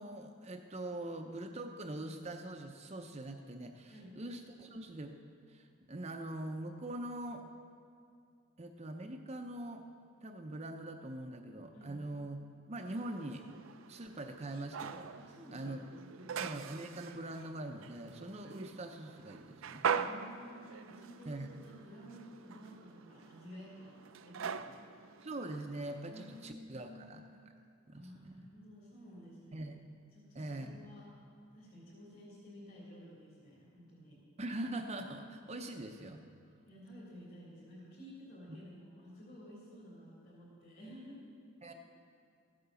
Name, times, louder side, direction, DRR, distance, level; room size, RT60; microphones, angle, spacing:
voice 1, 0.0-5.2 5.5-7.5 8.6-9.8 10.2-12.4 12.7-13.4 13.9-15.1 15.5-15.8 16.4-19.9 21.3-21.5 25.2-27.2 27.9-28.3 29.5-29.7 30.3-30.9 34.4-36.2 38.5-38.6 41.6-41.7, right 1 dB, 30° right, 4 dB, 0.6 m, -43 dB
sound 1, 12.8-26.5, right 6 dB, 70° right, 0.5 m, -43 dB
voice 2, 15.1-16.3 19.9-24.0 24.2-24.9 26.0-27.1 27.9-29.7 30.1-31.1 31.5-34.2 36.7-41.2 41.7-41.8, equal, 45° left, -9 dB, 3.7 m, -53 dB
15.0 x 8.8 x 6.9 m, 2.4 s
head